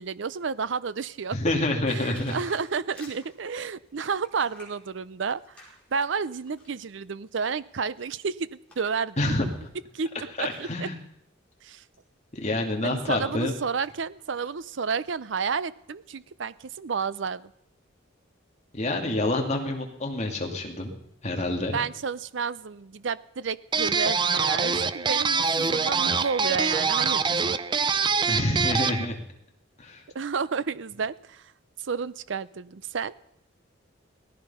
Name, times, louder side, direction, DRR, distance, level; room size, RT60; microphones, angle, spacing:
voice 1, 0.0-1.4 1.9-9.2 9.9-10.1 10.4-10.9 11.6-11.8 12.8-17.5 21.7-27.4 30.1-31.4 31.8-33.2, right 5 dB, 65° right, 17 dB, 0.6 m, -31 dB
voice 2, 1.3-2.4 9.2-9.5 10.4-11.0 12.3-13.5 18.7-20.9 21.2-21.8 28.3-29.2 29.8-30.0, left 2 dB, 35° left, 2 dB, 2.5 m, -27 dB
sound 1, 2.1-6.8 7.3-9.0 9.3-9.7 9.9-11.0 11.8-12.0 12.4-13.5 13.8-13.9 14.2-15.0 15.5-15.6, left 2 dB, 5° left, 4.9 m, -52 dB
sound 2, 23.7-29.1, right 5 dB, 25° right, 0.5 m, -25 dB
17.5 x 14.5 x 5.6 m, 0.79 s
head